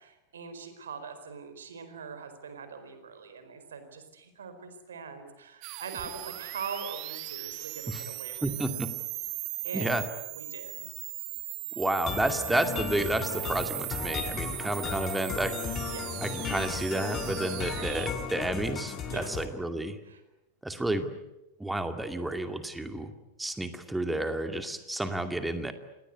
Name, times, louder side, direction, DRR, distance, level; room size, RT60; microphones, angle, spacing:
voice 1, 0.0-8.8 9.6-10.0 10.3-10.9 12.0-12.1 15.9-16.1 19.1-19.4 20.0-20.2, right 5 dB, 65° right, 9 dB, 4.5 m, -42 dB
sound 1, 5.6-18.1, right 20 dB, 40° right, 1.4 m, -38 dB
voice 2, 8.4-8.9 9.7-10.0 11.8-15.6 16.2-20.0 20.6-21.1 21.6-23.1 23.4-25.7, right 1 dB, 5° right, 7 dB, 2.4 m, -31 dB
sound 2, 12.1-19.4, left 6 dB, 25° left, 3.8 m, -35 dB
28.0 x 20.0 x 9.6 m, 0.98 s
figure-of-eight pair, 90°, 0 cm